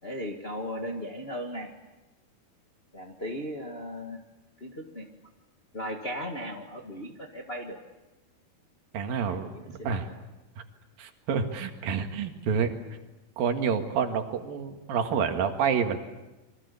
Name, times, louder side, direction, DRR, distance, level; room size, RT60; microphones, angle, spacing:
voice 1, 0.0-1.7 2.9-4.2 4.6-5.1 5.7-7.8 9.3-10.0, equal, 50° left, 2 dB, 0.6 m, -37 dB
voice 2, 8.9-10.1 11.0-12.7 13.4-16.0, right 6 dB, 65° right, 6 dB, 3.6 m, -28 dB
28.0 x 24.0 x 8.4 m, 1.1 s
omnidirectional pair, 4.5 m